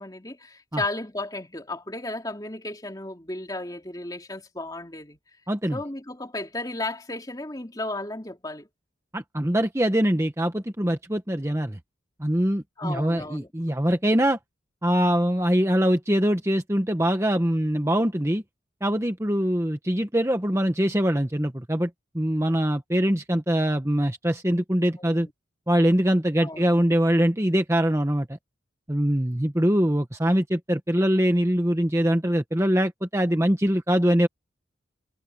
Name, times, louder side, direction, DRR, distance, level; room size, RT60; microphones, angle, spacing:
voice 1, 0.0-5.2 5.7-8.7 12.8-13.5 25.0-25.3 26.4-26.7, left 2 dB, 20° left, 3.0 m, -34 dB
voice 2, 5.5-5.8 9.1-11.8 12.2-14.4 14.8-18.4 18.8-21.9 22.1-25.3 25.7-28.3 28.9-34.3, equal, 15° right, 1.2 m, -23 dB
head